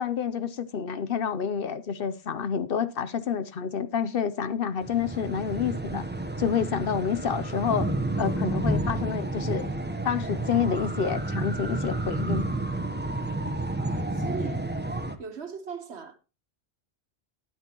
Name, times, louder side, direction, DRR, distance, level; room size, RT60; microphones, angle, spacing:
voice 1, 0.0-6.0 6.4-7.9 8.2-9.7 10.0-12.5, left 7 dB, 60° left, 0.9 m, -28 dB
sound 1, 4.8-15.2, right 2 dB, 10° right, 0.8 m, -30 dB
voice 2, 13.8-14.6 15.2-16.2, right 6 dB, 80° right, 1.5 m, -39 dB
12.5 x 10.5 x 3.0 m
omnidirectional pair, 1.1 m